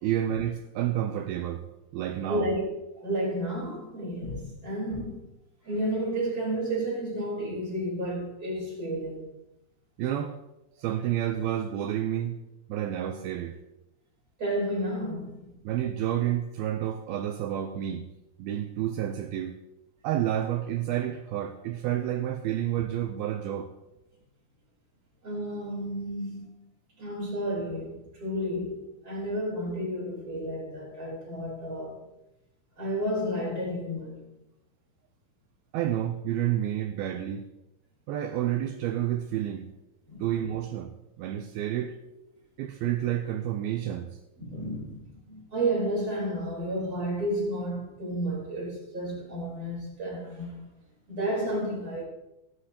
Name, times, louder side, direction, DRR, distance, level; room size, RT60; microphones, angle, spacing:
voice 1, 0.0-1.7 1.9-2.5 10.0-10.4 10.8-12.4 12.7-13.6 15.6-18.1 18.4-19.6 20.0-23.7 35.7-37.5 38.1-39.7 40.2-42.0 42.6-44.2, right 11 dB, 85° right, 2.2 m, -30 dB
voice 2, 2.3-5.2 5.6-9.3 14.4-15.5 22.7-22.8 25.2-26.5 27.0-32.0 32.8-34.2 40.1-40.2 44.4-45.0 45.3-50.6 51.1-52.0, right 1 dB, 20° right, 4.0 m, -31 dB
17.5 x 9.8 x 2.9 m
omnidirectional pair, 5.1 m